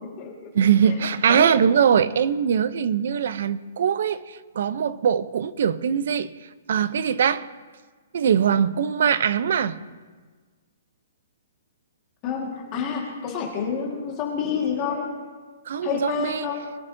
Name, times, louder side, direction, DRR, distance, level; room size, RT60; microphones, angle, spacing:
voice 1, 0.0-0.5 1.3-1.5 12.2-15.1 15.8-16.7, left 7 dB, 20° left, 1.7 m, -28 dB
voice 2, 0.5-7.5 8.1-9.8 15.7-16.5, right 8 dB, 50° right, 0.5 m, -22 dB
22.5 x 12.0 x 2.7 m
hypercardioid pair, 180°, 0 cm